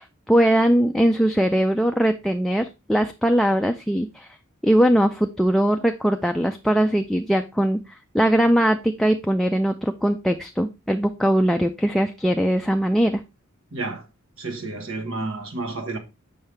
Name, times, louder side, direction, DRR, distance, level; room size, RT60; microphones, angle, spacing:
voice 1, 0.0-4.3 4.6-7.8 8.1-13.2, right 1 dB, ahead, 0.3 m, -20 dB
voice 2, 13.7-14.0 14.4-16.0, right 3 dB, 65° right, 1.3 m, -30 dB
7.2 x 5.7 x 3.3 m
head